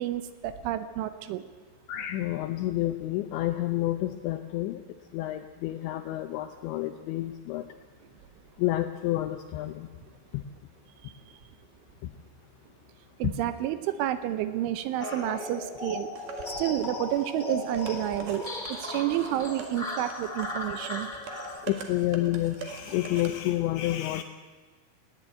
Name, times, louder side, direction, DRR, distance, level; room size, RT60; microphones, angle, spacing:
voice 1, 0.0-1.4 11.0-11.1 13.2-16.1 16.6-21.1, right 13 dB, 80° right, 12 dB, 3.0 m, -30 dB
voice 2, 1.9-4.8 5.1-7.7 8.6-9.9 10.3-10.4 12.0-12.1 13.2-13.3 21.6-24.2, left 15 dB, 80° left, 8 dB, 2.6 m, -29 dB
sound 1, 15.0-21.6, left 2 dB, 45° left, 0.5 m, -36 dB
sound 2, 16.2-23.4, right 6 dB, 55° right, 3.1 m, -44 dB
19.5 x 15.5 x 9.1 m, 1.4 s
omnidirectional pair, 5.9 m